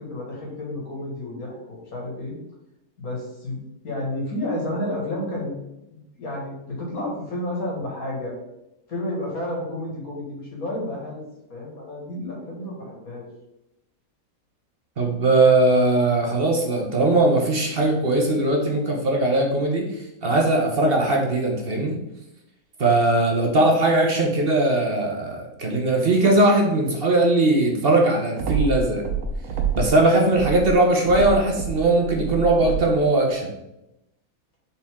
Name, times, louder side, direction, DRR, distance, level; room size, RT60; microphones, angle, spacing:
voice 1, 0.0-2.4 3.0-3.6 3.8-8.3 8.9-11.2 11.5-13.3, left 1 dB, 80° left, -2 dB, 2.4 m, -31 dB
voice 2, 15.0-22.0 22.8-29.0 29.7-33.5, right 2 dB, 45° right, 0 dB, 1.1 m, -20 dB
sound 1, 28.4-30.0 30.3-33.1, right 5 dB, 80° right, 1.3 m, -28 dB
6.8 x 4.2 x 3.6 m, 0.88 s
omnidirectional pair, 1.5 m